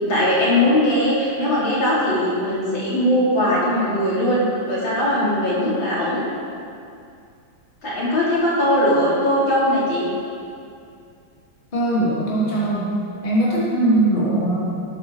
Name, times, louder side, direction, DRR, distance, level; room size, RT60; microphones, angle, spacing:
voice 1, 0.0-6.2 7.8-10.1 13.7-14.0, left 1 dB, 60° left, -8 dB, 4.3 m, -20 dB
voice 2, 11.7-12.9 13.2-14.6, right 1 dB, 20° left, -7 dB, 2.8 m, -21 dB
18.5 x 9.7 x 4.8 m, 2.4 s
omnidirectional pair, 2.4 m